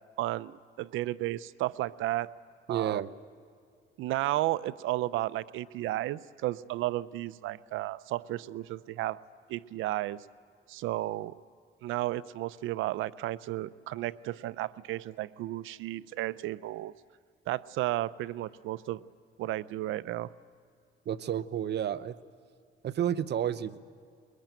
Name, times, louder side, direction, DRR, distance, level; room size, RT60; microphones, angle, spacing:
voice 1, 0.2-2.3 2.7-3.0 4.0-9.2 9.5-10.2 10.7-11.3 11.8-16.9 17.5-19.0 19.4-20.3, right 16 dB, 90° right, 17 dB, 0.6 m, -33 dB
voice 2, 2.7-3.1 21.1-22.2 22.8-23.8, right 10 dB, 60° right, 14 dB, 0.9 m, -31 dB
22.5 x 22.0 x 9.1 m, 2.3 s
cardioid pair, 90°, 20 cm